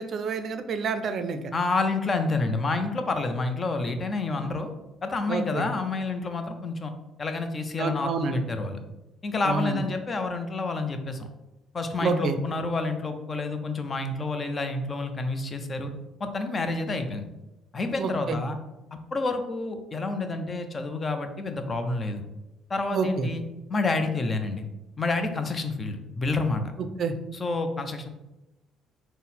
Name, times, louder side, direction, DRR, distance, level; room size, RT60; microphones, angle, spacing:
voice 1, 0.0-1.4 5.3-5.6 7.8-8.4 9.4-9.8 12.0-12.4 18.0-18.4 22.9-23.3 27.0-27.1, right 4 dB, 55° right, 9 dB, 0.4 m, -28 dB
voice 2, 1.5-4.7 5.0-6.9 7.2-8.8 9.2-11.3 11.7-15.9 16.2-17.3 17.7-18.6 19.1-22.2 22.7-23.4 23.7-24.6 25.0-26.7 27.3-28.1, left 3 dB, 35° left, 7 dB, 0.5 m, -29 dB
3.8 x 2.0 x 4.1 m, 0.98 s
supercardioid pair, 80°, 0 cm